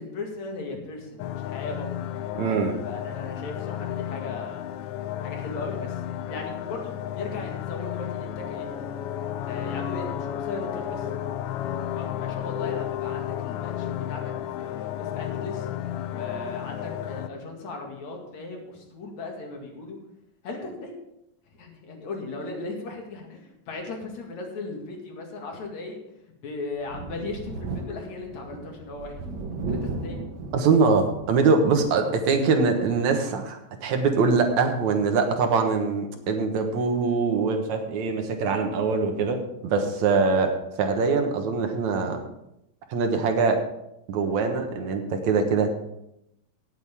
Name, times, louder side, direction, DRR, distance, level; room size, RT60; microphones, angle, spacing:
voice 1, 0.0-1.9 2.8-4.6 5.2-8.9 9.5-11.2 11.9-20.0 20.4-20.9 21.5-26.0 26.4-29.2 29.7-30.2, left 3 dB, 70° left, 1 dB, 3.3 m, -37 dB
sound 1, 1.2-17.3, left 11 dB, 90° left, 1.3 m, -32 dB
voice 2, 2.3-2.7 30.5-42.2 42.9-43.6 44.1-45.7, right 4 dB, 75° right, 4 dB, 2.6 m, -23 dB
Thunder, 26.8-31.9 32.3-32.4 33.8-33.9, right 3 dB, 55° right, 1.4 m, -35 dB
18.0 x 8.0 x 3.6 m, 0.83 s
omnidirectional pair, 3.3 m